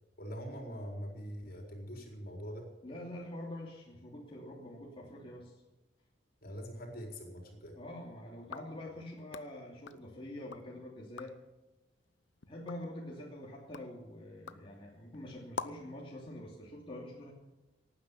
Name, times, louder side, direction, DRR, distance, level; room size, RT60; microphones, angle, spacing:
voice 1, 0.2-2.7 6.4-7.8, equal, 55° left, 1 dB, 4.2 m, -43 dB
voice 2, 2.8-5.6 7.7-11.3 12.5-17.3, left 1 dB, 30° left, -3 dB, 3.0 m, -45 dB
sound 1, 8.4-10.7 11.0-11.5 12.0-16.0, left 5 dB, 75° left, 0.8 m, -48 dB
18.0 x 9.8 x 7.0 m, 1.1 s
head